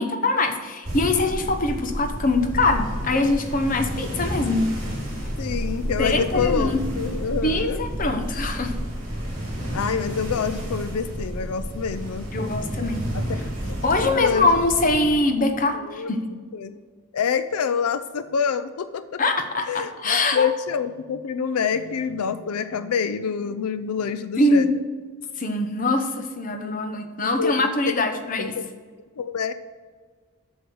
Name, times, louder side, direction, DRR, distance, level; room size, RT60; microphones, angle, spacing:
voice 1, 0.0-4.7 6.0-6.8 7.4-8.7 12.3-13.1 13.8-16.3 19.2-20.5 24.4-24.7 25.4-28.6, left 2 dB, 35° left, 6 dB, 0.8 m, -23 dB
sound 1, 0.8-15.1, equal, 35° right, 2.9 m, -30 dB
voice 2, 5.4-7.8 9.7-12.3 13.1-13.8 14.0-14.5 15.7-16.1 16.5-16.7 17.1-19.2 19.7-24.7 26.6-27.9 28.4-28.6 29.2-29.5, left 6 dB, 90° left, 12 dB, 0.4 m, -27 dB
7.9 x 6.4 x 6.2 m, 1.5 s
head